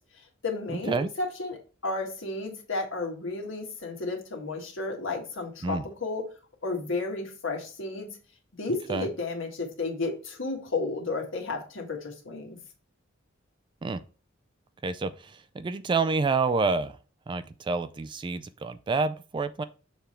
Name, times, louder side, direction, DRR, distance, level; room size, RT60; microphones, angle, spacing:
voice 1, 0.4-6.2 6.6-8.1 8.5-12.6, left 3 dB, 70° left, 1 dB, 1.7 m, -32 dB
voice 2, 14.8-16.9 17.3-19.6, right 4 dB, 25° right, 12 dB, 0.3 m, -28 dB
6.8 x 3.4 x 4.4 m, 0.37 s
head